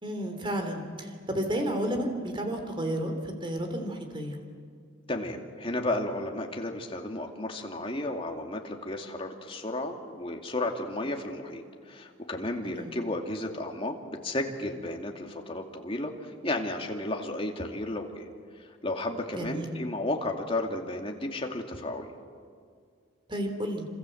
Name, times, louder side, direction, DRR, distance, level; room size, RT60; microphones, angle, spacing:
voice 1, 0.0-4.4 12.6-12.9 19.3-19.7 23.3-23.9, right 1 dB, 25° right, 5 dB, 3.4 m, -32 dB
voice 2, 5.1-18.3 18.8-22.1, left 1 dB, 30° left, 2 dB, 2.6 m, -33 dB
27.5 x 26.5 x 7.9 m, 2.1 s
head